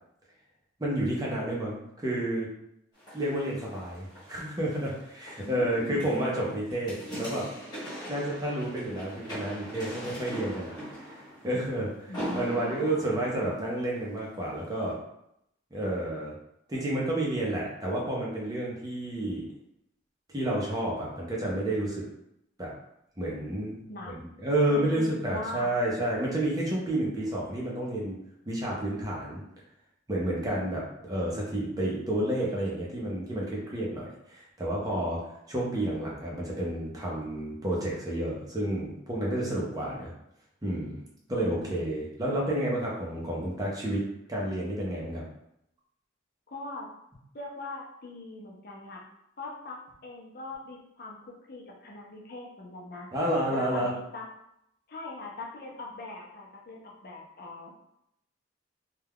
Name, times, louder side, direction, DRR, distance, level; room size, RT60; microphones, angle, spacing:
voice 1, 0.8-2.5 3.1-7.5 8.1-10.7 11.0-15.0 15.7-16.3 16.7-19.5 20.3-22.1 22.6-22.7 23.2-23.9 24.4-28.2 28.5-29.4 30.1-40.1 40.6-41.0 41.3-44.0 44.3-45.2 53.1-53.9, right 1 dB, 20° right, -4 dB, 0.6 m, -30 dB
sound 1, 2.9-14.2 14.7-14.8, equal, 20° left, 1.0 m, -42 dB
voice 2, 5.4-6.0 12.1-12.9 23.9-24.1 24.7-25.7 41.5-42.0 46.5-46.9 47.3-49.0 49.4-53.1 53.5-54.3 54.9-57.7, left 2 dB, 55° left, -1 dB, 0.5 m, -40 dB
2.3 x 2.3 x 3.4 m, 0.79 s
head